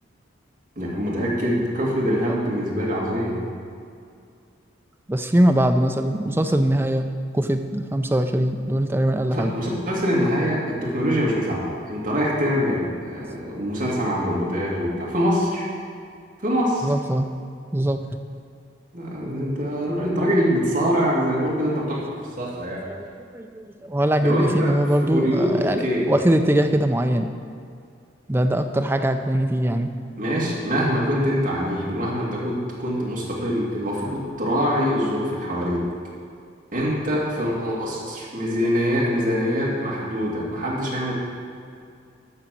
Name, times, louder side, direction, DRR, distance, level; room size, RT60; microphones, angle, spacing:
voice 1, 0.8-3.5 9.3-15.7 16.4-16.9 18.9-22.9 24.2-24.7 25.0-26.1 30.2-35.8 36.7-41.1, equal, 45° right, -5 dB, 2.1 m, -24 dB
voice 2, 5.1-7.1 7.3-9.5 16.8-17.3 17.7-18.1 22.8-27.3 28.3-29.9 38.0-38.1 39.4-39.5, right 1 dB, 10° right, 6 dB, 0.4 m, -22 dB
11.5 x 4.0 x 7.6 m, 2.3 s
head